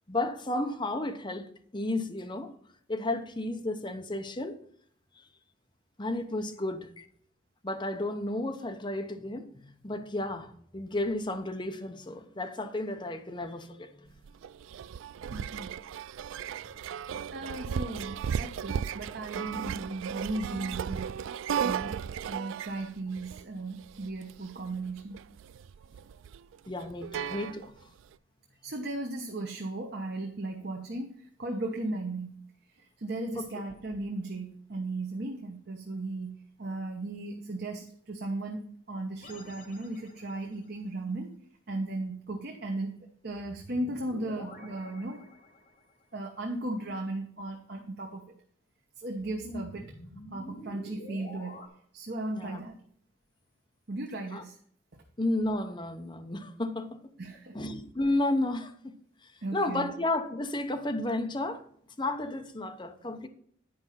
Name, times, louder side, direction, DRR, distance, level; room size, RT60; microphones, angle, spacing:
voice 1, 0.1-2.5 2.9-4.6 5.2-5.3 6.0-7.0 7.6-14.1 26.7-27.7 33.4-33.5 49.4-49.6 52.3-52.6 54.3-54.4 55.2-57.0 57.5-58.9 59.2-61.6 62.0-63.3, left 2 dB, 25° left, 0.8 m, -32 dB
sound 1, 14.1-28.0, right 8 dB, 80° right, 0.3 m, -36 dB
voice 2, 15.3-15.8 17.3-21.1 21.6-22.0 22.3-25.2 28.6-32.4 32.8-41.3 41.7-43.0 43.2-45.2 46.1-48.3 49.0-49.9 50.3-51.6 51.9-52.8 53.9-54.6 54.9-55.0 57.2-57.6 59.4-59.9, right 2 dB, 55° right, 1.0 m, -36 dB
sound 2, 39.2-40.6 43.3-45.9 49.1-51.7, left 1 dB, 40° left, 1.6 m, -48 dB
10.5 x 5.2 x 5.7 m
head